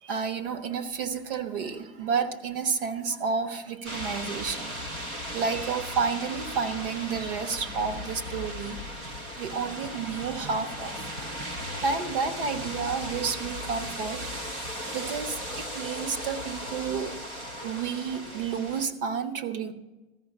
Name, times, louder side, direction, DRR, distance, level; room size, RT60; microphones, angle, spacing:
voice 1, 0.0-8.8 9.4-11.4 11.8-14.3 14.9-17.2 17.6-19.7, right 5 dB, 55° right, 11 dB, 1.2 m, -31 dB
sound 1, 3.8-18.9, equal, 15° right, 0.3 m, -37 dB
14.0 x 5.7 x 8.5 m, 1.1 s
supercardioid pair, 175°, 32 cm